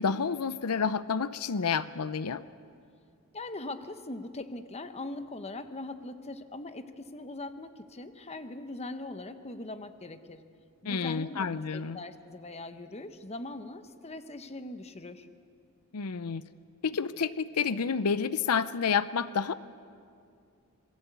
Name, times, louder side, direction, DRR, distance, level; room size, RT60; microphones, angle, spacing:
voice 1, 0.0-2.4 10.9-12.0 15.9-16.4 16.8-19.5, left 6 dB, 90° left, 15 dB, 0.7 m, -29 dB
voice 2, 3.3-10.4 10.8-11.5 11.7-15.3, left 2 dB, 30° left, 10 dB, 1.1 m, -41 dB
27.0 x 20.5 x 8.3 m, 2.3 s
head